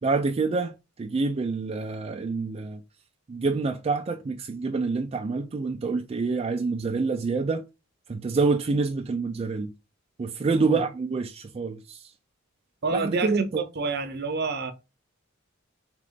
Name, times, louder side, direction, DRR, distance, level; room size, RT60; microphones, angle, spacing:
voice 1, 0.0-2.8 3.3-7.6 8.1-9.7 10.2-12.1 12.9-13.6, right 4 dB, 30° right, 0.3 m, -27 dB
voice 2, 12.8-14.7, right 3 dB, 55° right, 0.7 m, -29 dB
3.8 x 3.0 x 3.5 m
head